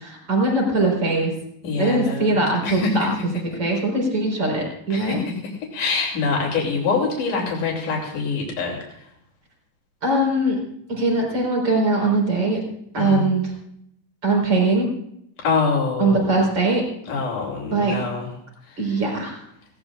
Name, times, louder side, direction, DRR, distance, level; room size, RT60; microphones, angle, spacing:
voice 1, 0.0-1.3 1.8-3.1 3.6-5.2 10.0-10.6 10.9-12.6 12.9-13.4 14.2-14.9 16.0-16.8 17.7-18.0 18.8-19.4, right 2 dB, 35° right, -1 dB, 5.0 m, -21 dB
voice 2, 1.6-2.4 2.6-3.1 4.9-5.4 5.7-9.1 13.0-13.3 15.4-16.4 17.1-18.3 18.6-18.8, left 4 dB, 80° left, -1 dB, 4.5 m, -25 dB
19.5 x 17.5 x 2.5 m, 0.75 s
omnidirectional pair, 3.6 m